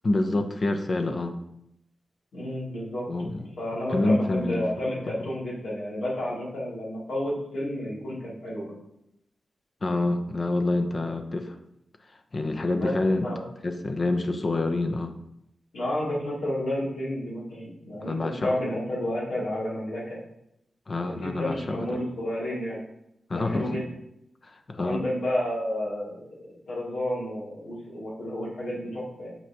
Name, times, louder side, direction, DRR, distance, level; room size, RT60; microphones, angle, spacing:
voice 1, 0.0-1.3 3.1-3.4 3.9-5.3 9.8-11.6 12.3-13.3 13.6-15.2 18.0-18.5 20.9-22.0 23.3-23.8 24.4-25.0, left 2 dB, 50° left, 6 dB, 0.9 m, -27 dB
voice 2, 2.3-3.0 3.4-8.7 12.8-12.9 13.2-13.4 15.7-20.2 21.0-22.8 23.3-23.9 24.8-29.4, left 1 dB, 90° left, -7 dB, 2.9 m, -31 dB
8.1 x 5.7 x 2.9 m, 0.80 s
cardioid pair, 60°, 0 cm